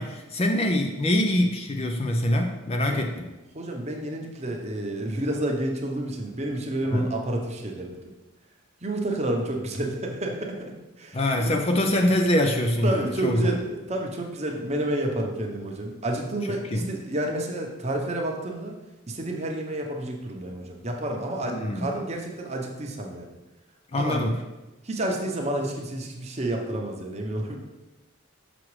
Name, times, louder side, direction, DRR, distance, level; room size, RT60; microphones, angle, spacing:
voice 1, 0.0-3.3 6.9-7.1 11.1-13.5 16.7-16.9 21.4-21.9 23.9-24.4, left 1 dB, 30° left, 4 dB, 0.4 m, -24 dB
voice 2, 3.5-7.9 8.8-11.5 12.8-18.8 19.1-23.3 23.9-24.3 24.8-27.6, right 1 dB, 30° right, 1 dB, 0.8 m, -30 dB
6.2 x 6.0 x 3.2 m, 1.1 s
head